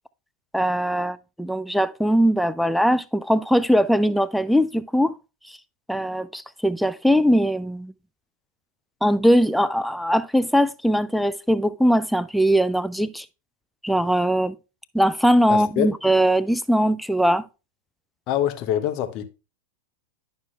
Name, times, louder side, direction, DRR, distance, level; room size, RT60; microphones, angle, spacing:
voice 1, 0.5-5.1 5.9-7.9 9.0-13.3 13.8-14.6 14.9-17.4, equal, ahead, 0.4 m, -20 dB
voice 2, 15.5-15.9 18.3-19.3, left 11 dB, 40° left, 0.9 m, -25 dB
11.0 x 5.5 x 2.4 m
figure-of-eight pair, 90°, 0 cm